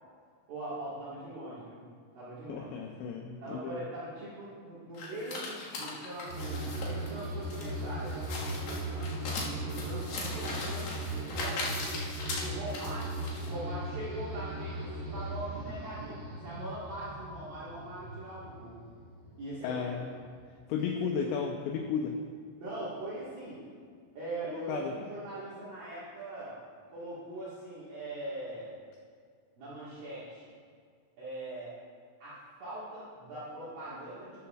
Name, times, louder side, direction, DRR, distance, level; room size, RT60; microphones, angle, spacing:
voice 1, 0.5-1.9 2.1-2.7 3.4-9.1 9.4-11.9 12.4-18.8 19.4-20.0 20.8-21.3 22.6-23.6 24.1-26.6 26.9-28.7 29.6-30.5 31.2-31.7 32.2-34.5, right 1 dB, 60° right, -10 dB, 2.6 m, -41 dB
voice 2, 2.5-3.8 19.6-20.1 20.7-22.2 24.4-24.9, left 6 dB, 90° left, 4 dB, 2.5 m, -34 dB
sound 1, 4.9-13.5, left 3 dB, 60° left, 2.8 m, -39 dB
sound 2, 6.3-19.6 19.9-20.5, right 1 dB, 30° right, 1.9 m, -38 dB
12.5 x 11.0 x 2.4 m, 2.1 s
omnidirectional pair, 5.7 m